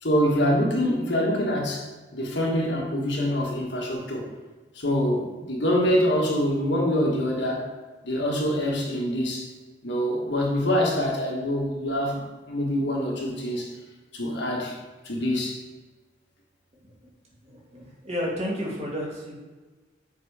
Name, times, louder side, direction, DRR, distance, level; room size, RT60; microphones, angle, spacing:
voice 1, 0.0-1.8 2.1-4.3 4.7-7.7 8.0-9.5 9.8-13.7 14.1-14.7 15.0-15.6, equal, 70° left, -1 dB, 1.5 m, -25 dB
voice 2, 17.4-19.4, equal, 35° right, -4 dB, 1.9 m, -31 dB
6.8 x 4.2 x 4.9 m, 1.3 s
head